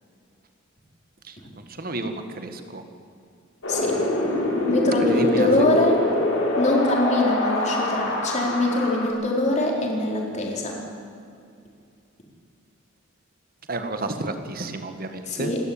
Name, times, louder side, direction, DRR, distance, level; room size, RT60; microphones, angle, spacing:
voice 1, 1.7-2.8 5.0-5.7 13.7-15.5, right 2 dB, 45° right, 7 dB, 1.8 m, -31 dB
Wind, 3.6-9.1, left 1 dB, 85° left, 5.3 m, -25 dB
voice 2, 4.7-6.0 6.6-10.8 15.3-15.6, left 2 dB, 35° left, -1 dB, 4.5 m, -23 dB
28.0 x 12.5 x 8.9 m, 2.5 s
head